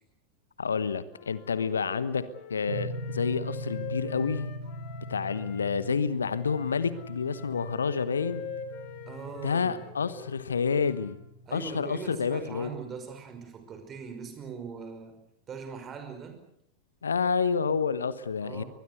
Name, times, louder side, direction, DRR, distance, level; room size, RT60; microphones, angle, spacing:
voice 1, 0.6-4.5 5.1-8.4 9.4-11.2 11.5-12.7 17.0-18.6, left 5 dB, 70° left, 16 dB, 1.1 m, -29 dB
Wind instrument woodwind instrument, 1.1-5.7 6.3-11.2, left 6 dB, 45° left, 3.6 m, -45 dB
sound 1, 2.7-12.4, equal, 75° right, 4.2 m, -41 dB
voice 2, 9.1-9.7 11.5-15.1 15.5-16.4 18.4-18.7, right 6 dB, 25° right, 6 dB, 5.5 m, -41 dB
22.5 x 20.5 x 8.2 m, 0.74 s
figure-of-eight pair, 90°, 0 cm